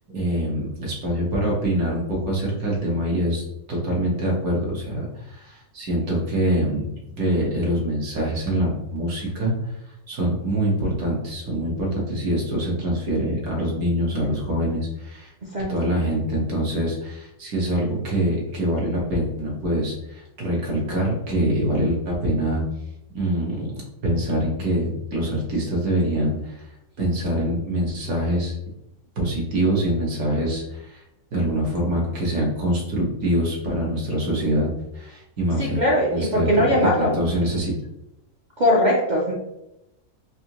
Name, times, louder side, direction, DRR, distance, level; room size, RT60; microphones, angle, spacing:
voice 1, 0.1-3.4 3.7-6.8 7.2-9.5 10.1-15.3 15.7-22.6 23.1-26.6 27.0-28.5 29.2-31.0 31.3-34.7 34.9-35.8 36.1-36.5 37.0-37.7, right 1 dB, 85° right, -3 dB, 1.7 m, -24 dB
voice 2, 35.6-37.1 38.6-39.3, left 1 dB, 60° right, -2 dB, 0.5 m, -20 dB
4.2 x 2.6 x 2.9 m, 0.88 s
omnidirectional pair, 1.5 m